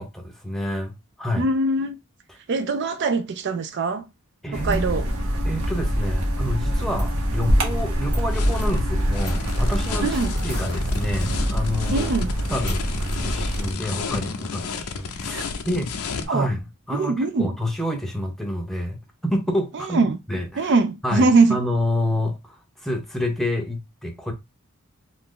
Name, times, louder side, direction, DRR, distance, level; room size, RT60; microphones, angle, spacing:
voice 1, 0.0-1.4 4.4-4.8 5.4-10.2 10.4-12.1 12.5-12.9 13.1-15.9 16.3-16.6 16.9-20.7 21.0-24.3, left 1 dB, ahead, 0.6 m, -28 dB
voice 2, 1.4-2.0 2.5-4.0 4.5-5.1 10.0-10.3 11.9-12.3 15.3-15.6 16.3-16.5 16.9-17.5 19.9-20.2 20.6-21.6, right 3 dB, 50° right, 0.4 m, -22 dB
sound 1, 4.5-13.7, equal, 70° right, 0.9 m, -24 dB
sound 2, 7.2-16.3, left 5 dB, 80° left, 0.6 m, -33 dB
2.8 x 2.5 x 3.6 m
head